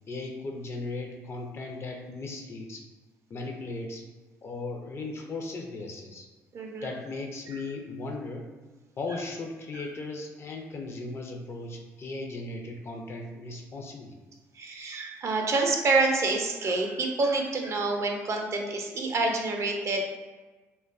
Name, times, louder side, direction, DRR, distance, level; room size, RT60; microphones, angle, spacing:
voice 1, 0.1-2.9 3.3-4.0 4.4-6.3 6.8-8.4 9.0-14.2, left 3 dB, 40° left, 2 dB, 0.5 m, -37 dB
voice 2, 6.5-7.0 7.5-7.6 9.7-9.8 14.5-20.0, right 3 dB, 50° right, 2 dB, 0.4 m, -27 dB
2.5 x 2.2 x 2.4 m, 1.3 s
supercardioid pair, 70°, 6 cm